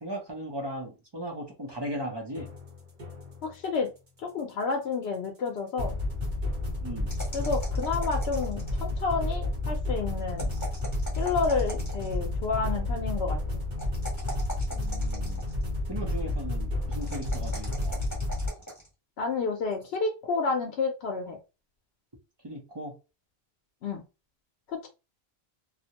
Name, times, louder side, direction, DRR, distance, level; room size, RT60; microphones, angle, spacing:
voice 1, 0.0-2.5 6.8-7.2 14.7-15.4 15.9-18.0 22.4-22.9, right 1 dB, 30° right, 0.6 m, -37 dB
sound 1, 2.3-3.5 5.8-18.5, left 2 dB, 50° right, 1.0 m, -31 dB
voice 2, 3.4-3.9 4.2-6.0 7.3-10.5 11.2-13.4 19.2-21.4 23.8-24.0 24.7-24.9, left 4 dB, 80° left, 0.8 m, -30 dB
sound 2, 7.1-8.9 10.3-12.2 13.8-15.6 16.9-18.9, right 1 dB, 15° left, 1.1 m, -41 dB
2.4 x 2.1 x 2.8 m
omnidirectional pair, 1.1 m